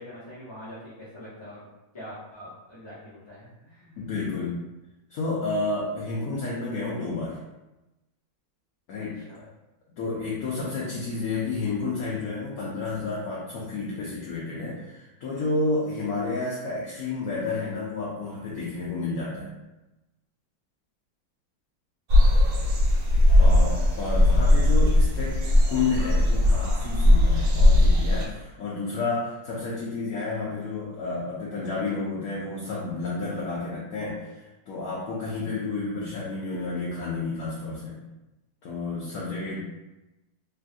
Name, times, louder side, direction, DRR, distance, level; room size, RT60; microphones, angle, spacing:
voice 1, 0.0-1.7 1.9-3.9 9.1-9.4 23.0-23.4, left 1 dB, 30° left, -12 dB, 0.7 m, -44 dB
voice 2, 4.0-4.6 5.1-7.4 8.9-9.5 10.0-19.6 23.4-38.0 38.6-39.6, left 3 dB, 75° left, -6 dB, 0.8 m, -31 dB
sound 1, 22.1-28.3, left 1 dB, 65° right, 0.9 m, -19 dB
3.2 x 2.4 x 2.5 m, 1.0 s
omnidirectional pair, 2.1 m